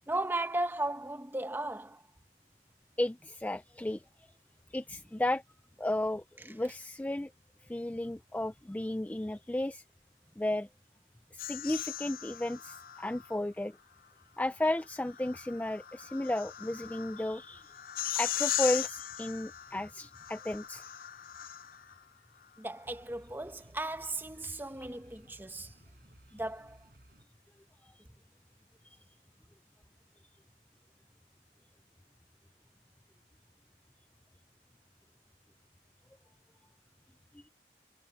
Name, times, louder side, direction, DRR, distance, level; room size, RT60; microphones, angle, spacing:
voice 1, 0.1-2.0 22.6-25.7 26.3-26.8, right 2 dB, 10° right, 0.9 m, -36 dB
voice 2, 3.0-4.0 4.7-5.4 5.8-7.3 7.6-9.8 10.4-10.7 11.3-13.8 14.4-17.6 18.2-20.8, left 1 dB, 10° left, 0.3 m, -33 dB
sound 1, 11.4-13.3 14.8-22.0, left 13 dB, 55° left, 0.6 m, -38 dB
sound 2, 22.9-27.3, equal, 55° right, 6.7 m, -59 dB
head